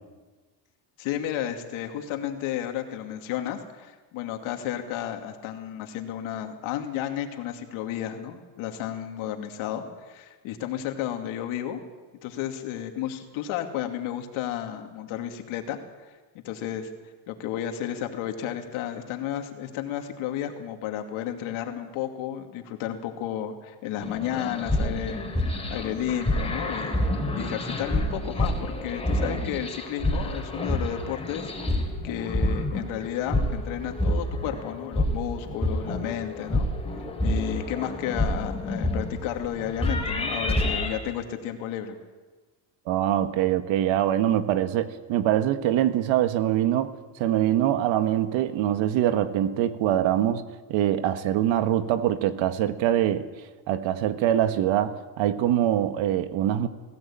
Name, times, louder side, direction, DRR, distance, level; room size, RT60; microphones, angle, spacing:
voice 1, 1.0-11.8 12.2-15.8 16.3-16.9 17.3-27.0 27.3-36.7 37.0-42.0, left 10 dB, 80° left, 5 dB, 2.7 m, -32 dB
sound 1, 24.0-40.9, left 1 dB, 10° left, 3.7 m, -28 dB
voice 2, 42.9-46.9 47.2-50.4 50.7-53.3 53.7-56.7, right 11 dB, 70° right, 10 dB, 1.6 m, -24 dB
20.5 x 16.5 x 8.8 m, 1.3 s
cardioid pair, 130°, 47 cm